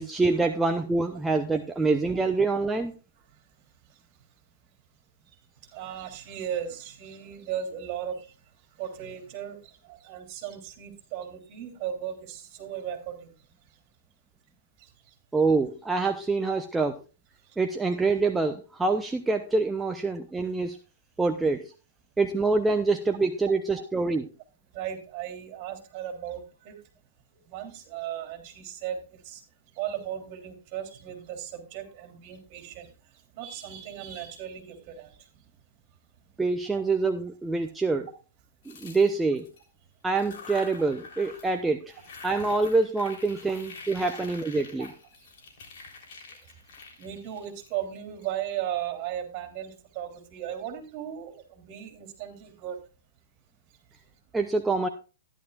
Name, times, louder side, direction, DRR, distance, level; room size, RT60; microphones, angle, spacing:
voice 1, 0.0-2.9 15.3-16.9 17.6-20.8 21.2-21.7 22.2-24.2 36.4-38.1 38.7-39.5 40.0-42.0 42.2-44.9 54.3-54.9, right 3 dB, 10° right, 5 dB, 0.8 m, -26 dB
voice 2, 5.7-8.3 8.8-13.3 14.8-14.9 24.7-26.7 27.5-29.4 29.8-32.9 33.3-35.1 44.8-44.9 47.0-52.8, right 10 dB, 40° right, 6 dB, 3.2 m, -36 dB
sound 1, 38.6-39.6 40.1-41.6 41.9-48.3, left 4 dB, 55° left, 3.7 m, -46 dB
14.0 x 11.0 x 2.4 m, 0.34 s
hypercardioid pair, 115°, 0 cm